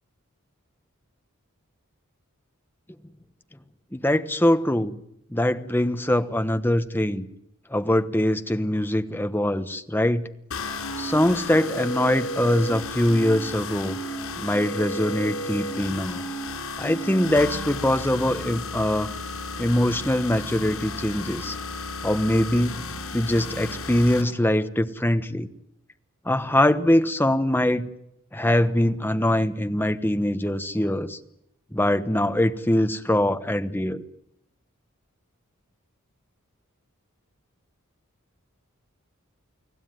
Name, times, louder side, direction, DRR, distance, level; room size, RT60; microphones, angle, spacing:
voice 1, 3.9-5.0 5.3-7.3 7.7-10.3 11.0-14.0 14.4-16.2 16.8-19.1 19.6-22.8 23.1-25.5 26.2-27.9 28.3-31.2 31.7-34.0, left 1 dB, 10° left, 9 dB, 1.1 m, -23 dB
sound 1, 10.5-24.2, left 2 dB, 75° left, 6.0 m, -33 dB
29.5 x 19.5 x 9.4 m, 0.80 s
head